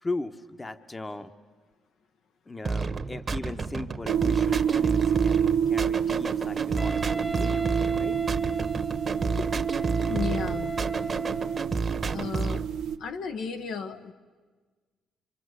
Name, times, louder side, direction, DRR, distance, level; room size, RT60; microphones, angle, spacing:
voice 1, 0.0-1.3 2.5-8.2, left 2 dB, 20° left, 9 dB, 1.2 m, -38 dB
sound 1, 2.6-12.7, right 4 dB, 35° right, 1.3 m, -31 dB
sound 2, 4.1-13.0, right 8 dB, 85° right, 1.0 m, -28 dB
Wind instrument woodwind instrument, 6.8-11.8, right 2 dB, 15° right, 0.7 m, -36 dB
voice 2, 10.1-10.7 12.1-12.6 13.0-14.1, left 5 dB, 75° left, 6 dB, 1.6 m, -33 dB
26.5 x 26.0 x 8.2 m, 1.4 s
cardioid pair, 90°, 0 cm